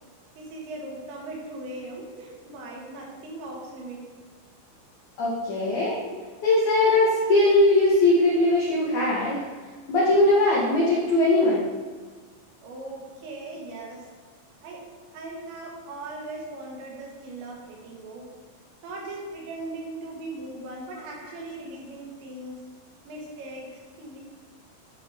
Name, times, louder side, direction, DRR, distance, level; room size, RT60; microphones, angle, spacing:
voice 1, 0.4-4.0 12.6-14.1 14.6-18.3 18.8-22.6 23.1-24.2, right 2 dB, 85° right, -2 dB, 3.6 m, -39 dB
voice 2, 5.2-6.1 6.4-9.4 9.9-11.7, left 2 dB, 75° left, -7 dB, 1.7 m, -20 dB
11.0 x 3.9 x 3.4 m, 1.4 s
omnidirectional pair, 5.1 m